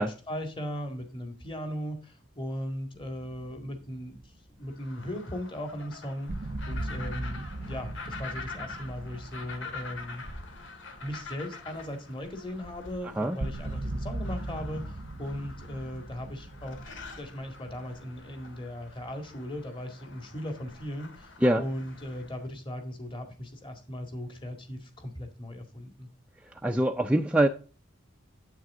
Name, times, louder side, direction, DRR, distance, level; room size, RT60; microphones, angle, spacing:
voice 1, 0.0-6.3 6.7-10.2 11.0-16.9 17.2-26.1, equal, 25° left, 1.9 m, -38 dB
sound 1, 2.9-4.3 4.6-4.7 5.7-5.8 6.3-11.6 11.9-12.0 12.6-12.7 13.4-18.6, right 1 dB, 45° right, 0.7 m, -39 dB
sound 2, 4.7-22.4, left 3 dB, 70° left, 2.0 m, -46 dB
voice 2, 26.6-27.5, right 1 dB, 5° right, 0.5 m, -23 dB
9.2 x 8.3 x 3.6 m
head